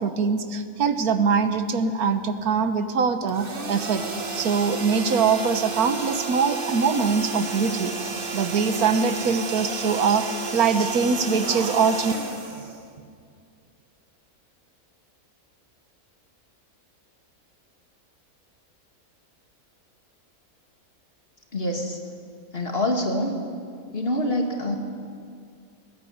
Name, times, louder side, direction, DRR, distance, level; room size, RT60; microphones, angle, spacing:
voice 1, 0.0-4.0 4.3-7.9 8.3-12.1, right 5 dB, 90° right, 10 dB, 1.6 m, -23 dB
sound 1, 3.3-13.3, right 4 dB, 40° right, 1.6 m, -32 dB
voice 2, 21.5-22.0 22.5-23.3 23.9-24.8, left 1 dB, 40° left, 2 dB, 2.5 m, -25 dB
19.5 x 16.0 x 9.4 m, 2.2 s
omnidirectional pair, 1.5 m